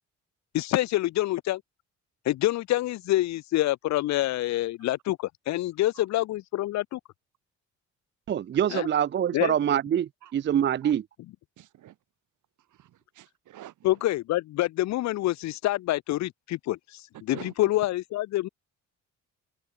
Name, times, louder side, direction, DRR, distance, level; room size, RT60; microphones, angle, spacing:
voice 1, 0.5-1.6 2.3-7.0 8.7-8.9 9.3-9.5 13.8-17.0 17.3-18.5, left 16 dB, 65° left, 0.5 m, -26 dB
voice 2, 8.3-11.0, right 9 dB, 40° right, 0.5 m, -25 dB
voice 3, 11.6-12.0 12.7-13.9 17.3-17.5, right 13 dB, 80° right, 4.0 m, -47 dB
open air
cardioid pair, 90°, 30 cm